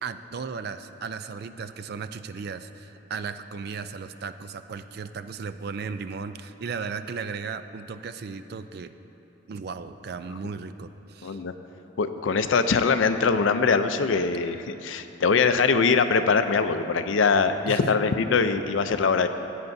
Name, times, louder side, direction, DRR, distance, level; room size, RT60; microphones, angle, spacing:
voice 1, 0.0-8.9 9.5-11.4 17.7-18.0, right 5 dB, 55° right, 11 dB, 0.4 m, -35 dB
voice 2, 11.2-11.5 12.0-19.3, left 5 dB, 85° left, 9 dB, 0.5 m, -22 dB
16.5 x 8.2 x 2.6 m, 3.0 s
head